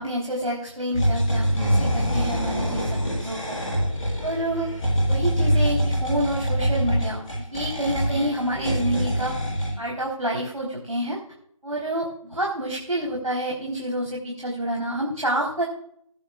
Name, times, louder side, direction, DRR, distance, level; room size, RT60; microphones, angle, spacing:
voice 1, 0.0-3.6 4.2-4.7 5.1-9.3 9.8-11.2 11.6-15.6, right 1 dB, 75° right, -2 dB, 4.0 m, -28 dB
sound 1, 0.9-9.7, equal, 10° left, 5.5 m, -24 dB
21.5 x 10.5 x 2.5 m, 0.70 s
figure-of-eight pair, 170°, 18 cm